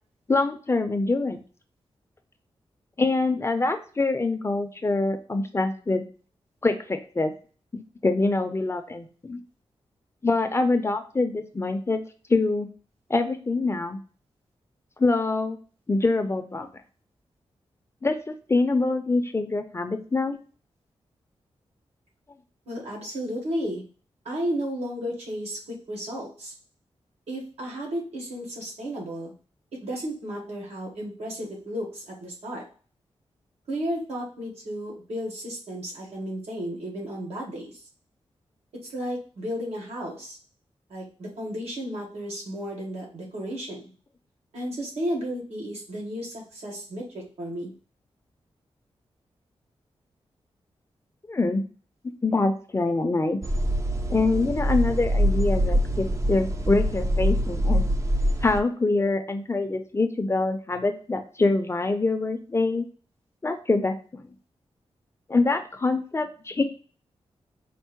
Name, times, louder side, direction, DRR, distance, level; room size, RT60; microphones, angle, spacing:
voice 1, 0.3-1.4 3.0-6.0 6.6-7.3 7.7-9.4 10.2-12.0 12.3-12.7 13.1-14.0 15.0-15.6 15.9-16.7 18.0-20.4 51.3-51.6 52.2-53.4 54.1-57.8 58.4-62.8 63.4-64.3 65.3-66.6, left 3 dB, 25° left, 7 dB, 0.5 m, -25 dB
voice 2, 22.7-23.8 24.3-26.5 27.3-29.3 29.8-32.6 33.7-37.7 38.9-40.4 40.9-43.8 44.5-47.7, equal, 85° right, -2 dB, 1.8 m, -33 dB
sound 1, 53.4-58.6, equal, 30° right, 0.5 m, -24 dB
4.5 x 2.0 x 4.4 m, 0.39 s
wide cardioid pair, 105°, 11 cm